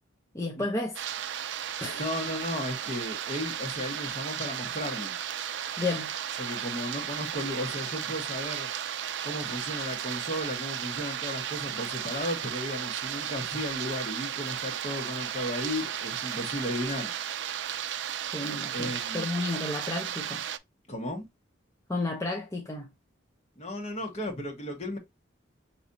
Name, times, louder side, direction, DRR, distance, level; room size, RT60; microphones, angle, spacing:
voice 1, 0.3-1.0 1.8-2.0 5.8-6.1 18.3-20.4 21.9-22.9, left 2 dB, 15° left, 0.6 m, -32 dB
sound 1, 0.9-20.6, right 10 dB, 65° right, 0.4 m, -34 dB
voice 2, 1.9-5.2 6.4-8.7 9.2-17.1 18.7-19.3 20.9-21.2 23.6-25.0, left 1 dB, 35° left, 1.3 m, -34 dB
5.0 x 3.1 x 2.6 m
head